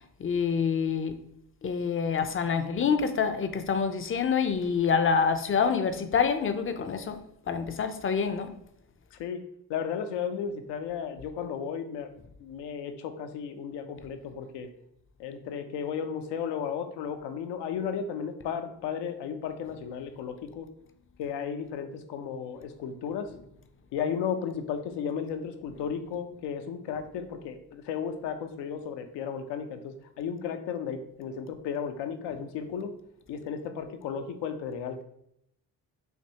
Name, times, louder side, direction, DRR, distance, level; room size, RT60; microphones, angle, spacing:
voice 1, 0.2-1.2 1.6-7.2 7.5-8.5, left 6 dB, 30° left, 0.6 m, -26 dB
voice 2, 9.7-12.1 12.4-14.7 15.2-20.7 21.2-23.3 23.9-32.9 33.3-35.0, left 7 dB, 75° left, 0.7 m, -34 dB
6.5 x 2.6 x 2.9 m
supercardioid pair, 70°, 43 cm